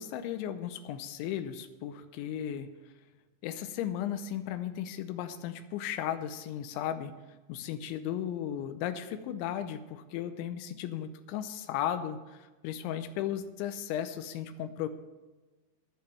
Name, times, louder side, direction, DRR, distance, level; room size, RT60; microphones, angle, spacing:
voice 1, 0.0-2.7 3.4-7.1 7.5-14.9, left 10 dB, 90° left, 8 dB, 3.1 m, -35 dB
10.5 x 8.9 x 7.6 m, 1.2 s
omnidirectional pair, 5.2 m